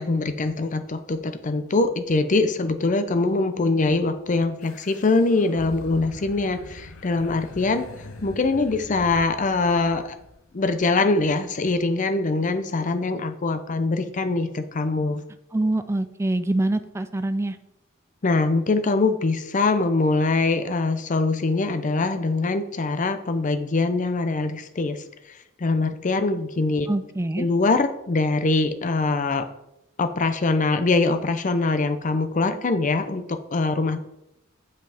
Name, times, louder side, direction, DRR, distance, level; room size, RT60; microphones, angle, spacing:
voice 1, 0.0-10.2 10.5-15.2 18.2-26.9 27.4-29.5 30.0-34.0, left 3 dB, 40° left, 10 dB, 0.5 m, -23 dB
sound 1, 4.6-10.6, left 2 dB, 85° left, 0.9 m, -43 dB
voice 2, 15.5-17.6 26.9-27.5, right 2 dB, 15° right, 11 dB, 0.3 m, -25 dB
7.6 x 5.6 x 3.4 m, 0.85 s
head